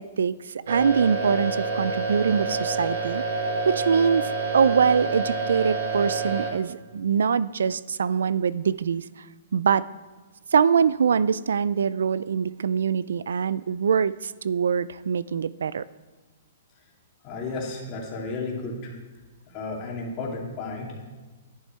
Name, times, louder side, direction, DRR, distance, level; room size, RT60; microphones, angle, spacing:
voice 1, 0.0-3.2 3.7-9.0 9.5-9.8 10.5-15.8, right 6 dB, 90° right, 18 dB, 0.3 m, -23 dB
sound 1, 0.7-6.5, right 3 dB, 65° right, 1.5 m, -28 dB
voice 2, 17.2-19.0 19.5-21.0, left 3 dB, 30° left, -2 dB, 2.3 m, -33 dB
11.0 x 10.5 x 4.4 m, 1.3 s
hypercardioid pair, 160°, 0 cm